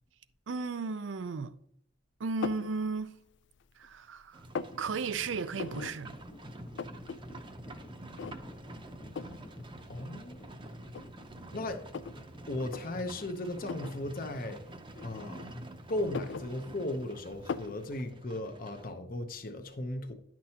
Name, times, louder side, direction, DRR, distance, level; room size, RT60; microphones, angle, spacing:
voice 1, 0.5-1.5 2.2-3.2 3.8-4.4 4.8-6.1, right 4 dB, 85° right, 0.5 m, -34 dB
sound 1, 2.4-2.7 3.3-3.9 4.2-4.8 5.6-5.9 6.3-6.4 6.6-7.2 7.5-7.6 8.2-8.6 9.2-9.4 10.3-10.4 10.9-12.2 12.6-12.8 13.6-14.0 14.9-15.6 16.0-17.0 17.5-17.8, left 5 dB, 65° left, 0.3 m, -39 dB
Livestock farm animals working animals, 4.3-13.4, equal, 20° left, 1.2 m, -51 dB
Livestock farm animals working animals 2, 4.3-18.9, right 1 dB, 25° right, 0.7 m, -48 dB
voice 2, 9.9-10.4 11.5-11.8 12.1-14.6 15.0-15.6 15.9-20.1, left 1 dB, 50° left, 0.8 m, -36 dB
10.5 x 6.0 x 2.9 m
head